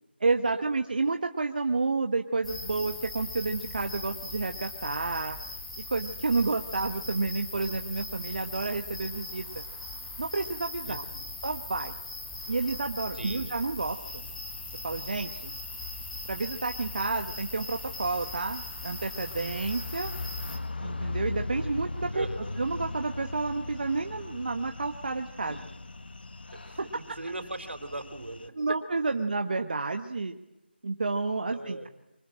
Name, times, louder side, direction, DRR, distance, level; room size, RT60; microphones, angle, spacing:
voice 1, 0.2-5.4 5.9-9.6 10.2-11.0 11.4-12.0 12.5-14.2 14.8-15.6 16.3-20.1 20.8-22.3 22.6-25.6 26.8-26.9 28.6-30.4 30.8-31.9, right 3 dB, 50° right, 5 dB, 1.4 m, -30 dB
sound 1, 2.4-20.6, left 2 dB, 5° left, 1.6 m, -40 dB
voice 2, 10.8-11.3 13.1-13.5 22.1-22.6 26.5-28.5 31.5-31.9, right 2 dB, 80° right, 8 dB, 4.3 m, -39 dB
sound 2, 13.9-28.5, left 2 dB, 60° left, 1.7 m, -40 dB
24.5 x 20.5 x 8.9 m, 0.96 s
figure-of-eight pair, 165°, 6 cm